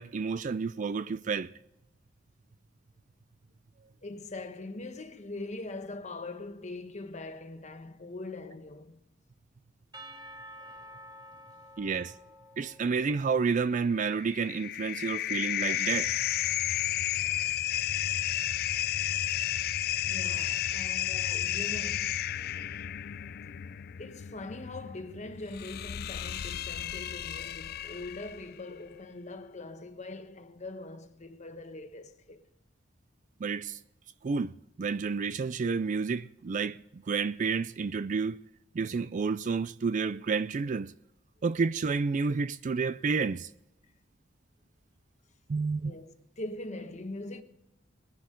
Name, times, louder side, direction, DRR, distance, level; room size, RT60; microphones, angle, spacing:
voice 1, 0.0-1.5 11.8-12.1 12.6-16.1 33.4-33.8 34.2-38.4 38.7-40.9 41.4-43.5 45.5-45.9, right 5 dB, 40° right, 0.4 m, -30 dB
voice 2, 4.0-9.0 16.7-16.8 20.1-22.3 24.0-32.4 45.8-47.4, left 2 dB, 40° left, 1.1 m, -42 dB
Percussion / Church bell, 9.9-13.9, equal, 25° right, 1.8 m, -50 dB
sound 1, 13.9-28.5, left 12 dB, 55° left, 0.4 m, -32 dB
21.0 x 10.5 x 3.8 m
head